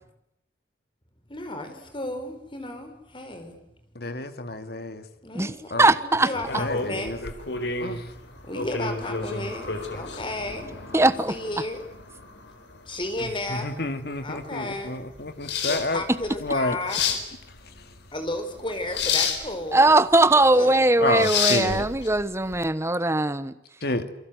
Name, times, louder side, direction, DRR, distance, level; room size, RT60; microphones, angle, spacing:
voice 1, 1.3-3.6 5.2-5.6 5.9-7.2 8.4-11.8 12.9-13.8 14.2-15.0 15.7-17.0 18.1-19.9 20.2-20.8, left 1 dB, 30° left, 7 dB, 4.7 m, -33 dB
voice 2, 3.9-5.0 5.7-5.9 6.6-7.2 7.8-8.1 13.2-16.0 16.4-16.8 21.0-21.9 23.8-24.1, left 2 dB, 60° left, 9 dB, 2.3 m, -29 dB
voice 3, 5.8-6.3 10.9-11.3 16.1-16.2 19.7-23.5, right 2 dB, 15° right, 13 dB, 1.2 m, -20 dB
sound 1, 6.4-22.6, left 5 dB, 85° left, 4.5 m, -31 dB
28.0 x 23.5 x 8.1 m, 0.83 s
head